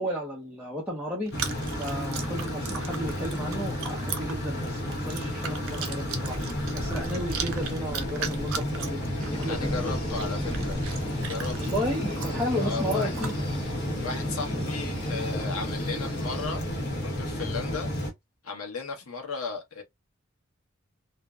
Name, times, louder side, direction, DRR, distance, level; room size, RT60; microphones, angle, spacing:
voice 1, 0.0-1.3 1.8-6.4 6.7-9.0 9.4-10.6 11.6-13.3, equal, 5° right, 0.6 m, -33 dB
Chewing mastication, 1.2-13.3, right 6 dB, 80° right, 0.6 m, -39 dB
sound 1, 1.3-18.1, equal, 55° left, 0.9 m, -32 dB
sound 2, 9.2-16.5, left 1 dB, 25° left, 1.0 m, -37 dB
voice 2, 9.5-11.0 11.3-11.8 12.6-13.1 14.0-17.9 18.4-19.8, left 4 dB, 90° left, 0.9 m, -35 dB
2.6 x 2.1 x 2.3 m
head